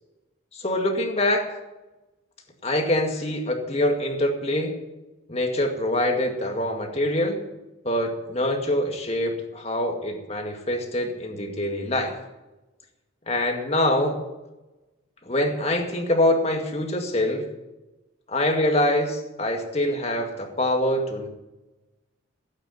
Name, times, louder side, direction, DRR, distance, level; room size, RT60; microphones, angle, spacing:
voice 1, 0.5-1.5 2.6-4.8 5.3-7.4 7.8-12.1 13.3-14.2 15.3-17.5 18.3-21.3, left 1 dB, 30° left, 4 dB, 2.1 m, -24 dB
16.5 x 8.9 x 8.1 m, 1.1 s
head